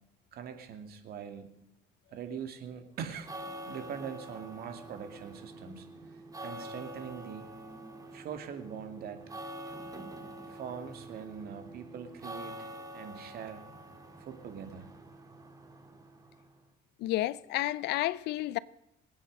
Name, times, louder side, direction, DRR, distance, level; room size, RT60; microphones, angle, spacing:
voice 1, 0.3-1.5 2.1-3.3 3.7-7.5 8.1-9.2 10.5-12.7 12.9-13.6 14.2-14.9, right 7 dB, 65° right, 2.5 m, -42 dB
sound 1, 3.0-16.6, right 1 dB, 20° right, 2.1 m, -46 dB
voice 2, 17.0-18.6, left 16 dB, 80° left, 0.6 m, -31 dB
26.0 x 8.9 x 5.4 m
cardioid pair, 110°, 17 cm